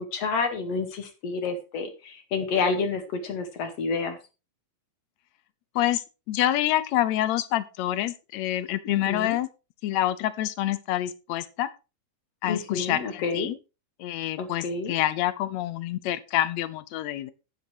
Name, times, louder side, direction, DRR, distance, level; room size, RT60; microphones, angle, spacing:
voice 1, 0.1-4.2 8.8-9.4 12.5-13.5 14.4-14.9, left 4 dB, 50° left, 7 dB, 2.8 m, -29 dB
voice 2, 5.7-9.5 9.8-11.7 12.4-13.5 14.0-17.3, left 13 dB, 75° left, 15 dB, 1.7 m, -27 dB
10.5 x 8.7 x 4.6 m, 0.30 s
omnidirectional pair, 4.2 m